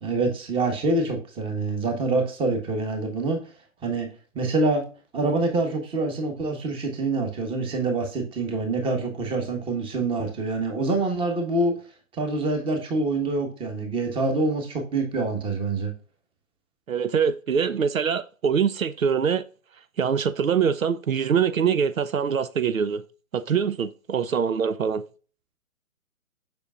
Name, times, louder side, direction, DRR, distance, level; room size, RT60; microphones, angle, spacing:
voice 1, 0.0-3.4 3.8-4.1 4.3-4.8 5.1-11.7 12.1-15.9, right 3 dB, 15° right, 1.3 m, -26 dB
voice 2, 16.9-19.4 20.0-23.0 23.3-25.0, right 7 dB, 80° right, 0.7 m, -24 dB
6.9 x 6.1 x 2.4 m
figure-of-eight pair, 130°, 40 cm